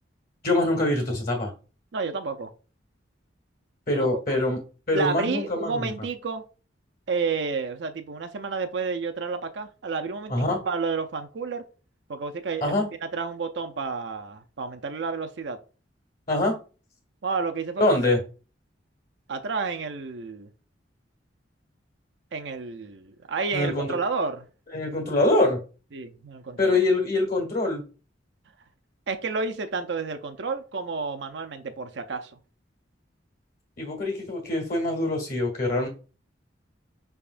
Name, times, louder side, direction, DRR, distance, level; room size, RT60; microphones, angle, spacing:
voice 1, 0.4-1.5 3.9-4.6 4.9-5.9 10.3-10.6 12.6-12.9 16.3-16.5 17.8-18.2 23.5-24.0 24.7-25.6 26.6-27.8 33.8-35.9, left 2 dB, 50° left, 1.6 m, -24 dB
voice 2, 1.9-2.5 3.9-4.4 4.9-6.4 7.1-11.6 12.1-12.7 13.1-15.6 17.2-18.1 19.3-20.5 22.3-24.5 25.9-26.8 29.1-32.3, right 4 dB, 65° right, 0.5 m, -30 dB
5.7 x 3.5 x 2.5 m
head